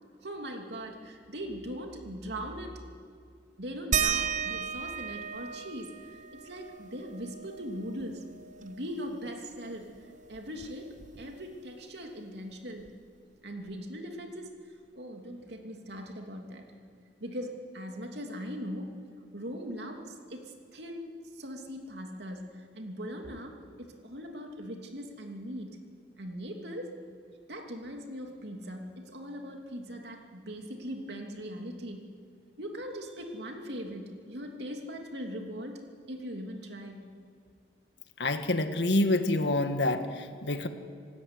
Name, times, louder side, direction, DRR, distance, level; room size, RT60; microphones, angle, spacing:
voice 1, 0.2-2.8 3.6-5.9 6.3-8.3 8.6-12.9 13.4-16.7 17.2-18.9 19.3-25.8 26.2-26.9 27.5-32.1 32.6-37.1, equal, 70° right, 2 dB, 2.8 m, -40 dB
sound 1, 3.9-9.1 9.4-9.5 9.8-11.6 12.9-13.0 13.7-13.8, right 7 dB, 40° right, 0.8 m, -35 dB
voice 2, 38.2-40.7, left 2 dB, 75° left, 8 dB, 1.6 m, -27 dB
26.0 x 13.5 x 9.7 m, 2.3 s
head